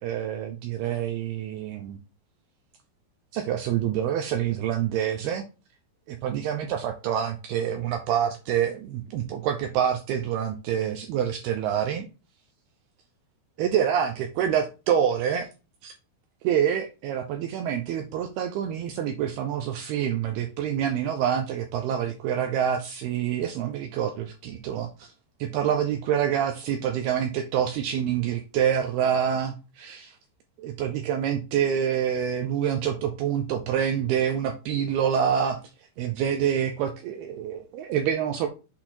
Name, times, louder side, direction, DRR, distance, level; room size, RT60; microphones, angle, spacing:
voice 1, 0.0-2.0 3.3-5.4 6.1-12.1 13.6-15.5 15.8-15.9 16.4-25.1 25.4-30.1 30.6-35.6 36.0-38.5, right 9 dB, 80° right, 6 dB, 2.4 m, -27 dB
7.9 x 4.1 x 4.3 m, 0.31 s
omnidirectional pair, 5.2 m